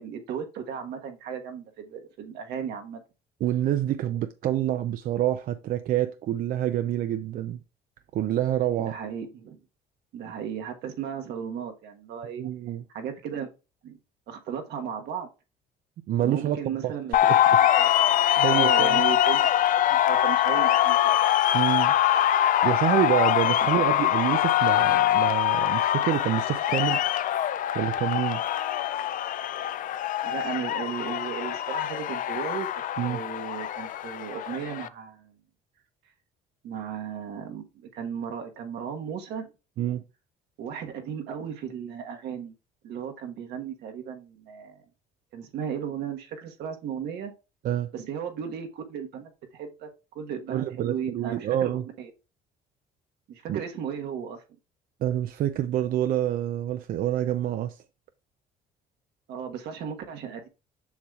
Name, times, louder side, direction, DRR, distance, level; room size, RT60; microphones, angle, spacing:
voice 1, 0.0-3.0 8.8-9.6 10.1-12.4 12.9-13.5 13.8-14.0 14.3-15.3 16.2-17.2 17.6-17.9 18.5-19.4 19.7-21.1 23.4-23.9 30.2-32.7 33.1-35.4 36.6-39.5 40.6-42.5 42.8-44.8 45.3-47.3 47.9-49.9 50.1-51.7 52.0-52.1 53.3-54.4 59.3-60.5, right 7 dB, 75° right, 1.3 m, -35 dB
voice 2, 3.4-7.6 8.1-8.9 12.4-12.8 16.1-16.6 16.8-16.9 17.2-17.6 18.4-19.0 21.5-21.9 22.6-27.0 27.7-28.4 33.0-33.2 39.8-40.0 47.6-47.9 50.5-51.8 53.5-53.6 55.0-57.8, right 12 dB, 60° right, 0.5 m, -27 dB
sound 1, 17.1-34.9, left 12 dB, 55° left, 0.4 m, -23 dB
7.1 x 6.2 x 2.4 m
cardioid pair, 110°, 17 cm